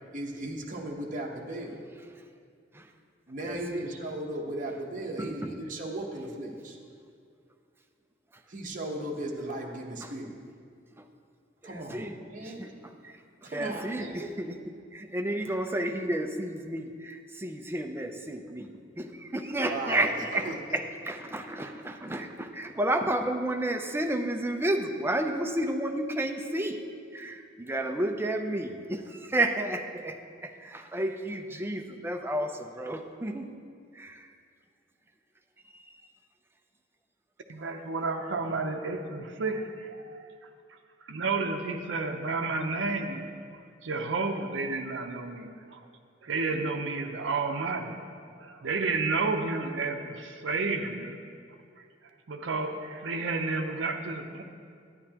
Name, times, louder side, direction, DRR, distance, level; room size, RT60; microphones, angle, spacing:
voice 1, 0.1-1.9 3.3-6.8 8.5-10.4 11.6-12.7 13.4-14.3 19.7-20.8, right 1 dB, 45° right, 0 dB, 1.0 m, -36 dB
voice 2, 3.4-3.9 5.2-5.5 8.3-8.4 10.0-10.1 11.0-11.1 11.6-14.6 14.9-18.7 19.0-26.8 27.1-33.5 33.9-34.3 35.6-36.1, right 1 dB, 10° right, 5 dB, 0.5 m, -32 dB
voice 3, 37.5-40.3 41.1-43.2 43.5-45.8 46.2-47.9 48.4-51.2 52.3-54.4, right 3 dB, 70° right, 3 dB, 0.6 m, -31 dB
11.0 x 9.6 x 2.9 m, 2.3 s
head